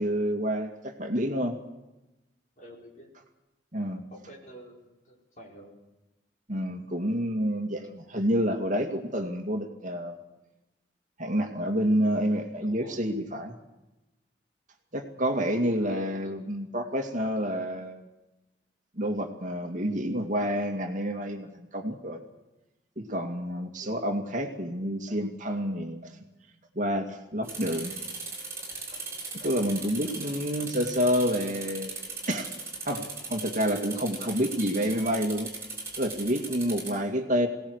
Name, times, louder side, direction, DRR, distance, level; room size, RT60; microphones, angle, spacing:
voice 1, 0.0-1.6 3.7-4.0 6.5-10.2 11.2-13.5 14.9-18.1 19.0-22.2 23.0-26.2 26.7-28.0 29.3-31.9 32.3-32.5 32.8-35.5 36.0-37.5, equal, 45° right, 4 dB, 2.2 m, -28 dB
voice 2, 2.6-3.1 4.1-5.8 12.6-13.0 15.2-15.4 15.8-16.5 23.8-24.2, equal, 45° left, -1 dB, 4.9 m, -48 dB
sound 1, 27.4-36.9, right 3 dB, 15° right, 7.6 m, -38 dB
23.0 x 18.0 x 8.1 m, 1.0 s
head